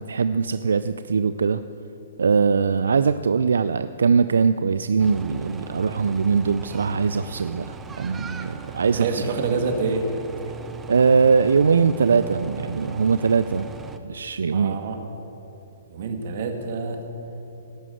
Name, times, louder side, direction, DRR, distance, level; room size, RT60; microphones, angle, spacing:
voice 1, 0.0-1.6 2.2-9.3 10.9-13.7 14.0-14.8, right 5 dB, 85° right, 12 dB, 0.4 m, -21 dB
sound 1, 5.0-14.0, right 5 dB, 10° right, 0.7 m, -39 dB
voice 2, 8.9-10.1 14.5-15.0 15.9-17.0, right 4 dB, 55° right, 5 dB, 1.7 m, -27 dB
17.0 x 6.1 x 7.8 m, 2.9 s
hypercardioid pair, 145°, 0 cm